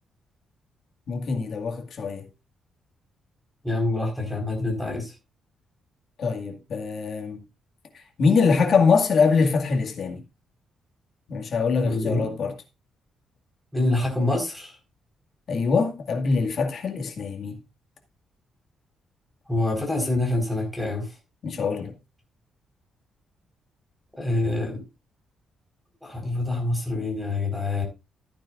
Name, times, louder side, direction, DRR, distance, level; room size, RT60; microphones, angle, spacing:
voice 1, 1.1-2.2 6.2-7.4 8.2-10.2 11.3-12.5 15.5-17.6 21.4-21.9, left 5 dB, 55° left, 2.1 m, -23 dB
voice 2, 3.6-5.1 11.8-12.3 13.7-14.7 19.5-21.1 24.2-24.8 26.0-27.8, left 2 dB, ahead, 4.5 m, -26 dB
14.5 x 9.2 x 2.5 m
cardioid pair, 135°, 0 cm